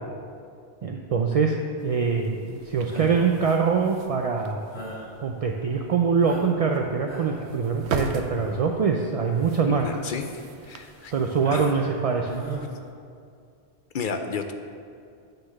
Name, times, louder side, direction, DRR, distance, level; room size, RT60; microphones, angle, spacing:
voice 1, 0.8-1.5 1.8-4.6 5.2-9.9 11.1-12.3, right 5 dB, 55° right, 2 dB, 0.4 m, -24 dB
sound 1, 1.8-12.9, right 5 dB, 90° right, 0.9 m, -41 dB
sound 2, 2.9-3.4 4.7-5.1 5.7-5.8 6.2-6.7 7.0-7.5 8.3-8.7 9.3-9.7 10.2-10.3 11.4-11.9 12.2-12.6, right 2 dB, 80° left, 2.7 m, -37 dB
voice 2, 9.7-11.1 11.5-11.7 13.9-14.5, left 5 dB, 60° left, 6 dB, 0.6 m, -32 dB
9.1 x 3.8 x 6.3 m, 2.4 s
omnidirectional pair, 1.1 m